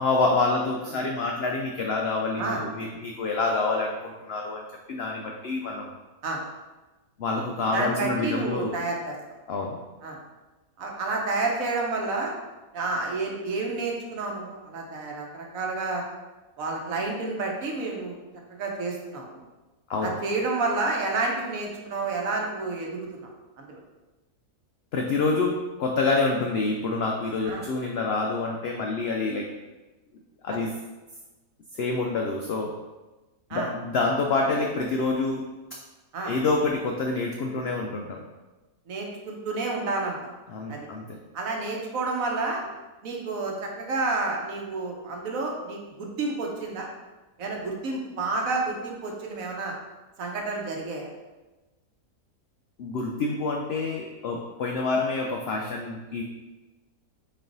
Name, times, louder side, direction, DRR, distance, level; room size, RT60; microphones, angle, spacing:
voice 1, 0.0-4.6 4.9-5.9 7.2-8.8 9.5-9.8 19.9-20.1 24.9-29.5 30.4-30.7 31.8-32.7 33.5-35.4 36.3-38.2 40.5-41.2 52.8-56.2, left 3 dB, 90° left, 0 dB, 0.5 m, -27 dB
voice 2, 7.7-9.1 10.0-10.2 10.8-12.3 12.7-16.0 16.6-18.2 18.5-19.4 20.0-23.3 23.6-23.8 27.5-27.7 30.5-30.6 33.5-33.7 36.1-36.3 38.9-40.3 40.7-40.8 41.3-42.6 43.0-46.9 47.4-49.7 50.2-51.1, right 3 dB, 65° right, 0 dB, 1.1 m, -30 dB
4.2 x 3.2 x 3.8 m, 1.1 s
omnidirectional pair, 1.6 m